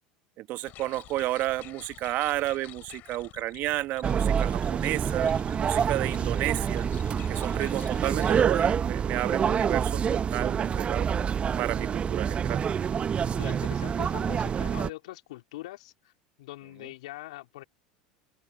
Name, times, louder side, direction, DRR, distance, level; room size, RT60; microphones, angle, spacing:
voice 1, 0.4-5.3 5.6-6.9 7.3-11.1 11.6-12.6, right 16 dB, 50° right, 1.3 m, -31 dB
sound 1, 0.6-8.4, left 16 dB, 50° left, 3.0 m, -49 dB
sound 2, 4.0-14.9, right 7 dB, 30° right, 1.0 m, -27 dB
voice 2, 13.4-16.1 16.4-17.6, left 17 dB, 70° left, 3.7 m, -42 dB
open air
hypercardioid pair, 80°, 4 cm